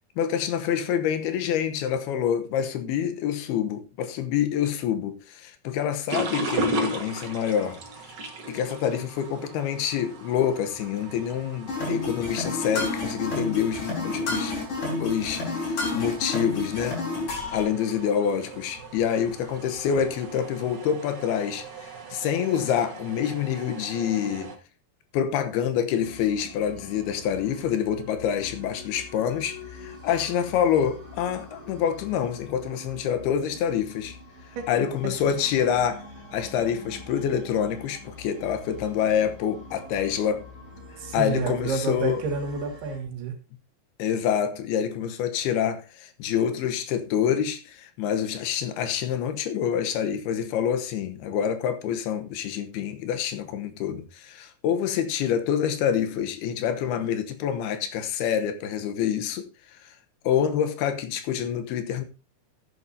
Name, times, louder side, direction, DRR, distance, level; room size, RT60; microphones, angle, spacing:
voice 1, 0.2-7.8 8.5-14.6 15.0-17.0 17.5-24.5 25.1-34.2 34.7-40.5 41.1-42.2 44.0-59.9 60.2-62.0, left 8 dB, 85° left, 3.0 m, -27 dB
sound 1, 6.1-24.6, right 1 dB, 50° right, 1.3 m, -37 dB
sound 2, 11.7-17.6, left 3 dB, 55° left, 5.4 m, -30 dB
sound 3, 26.0-43.0, left 2 dB, 25° right, 3.6 m, -45 dB
voice 2, 41.0-43.4, right 4 dB, 85° right, 4.4 m, -29 dB
14.5 x 9.2 x 2.8 m
omnidirectional pair, 4.5 m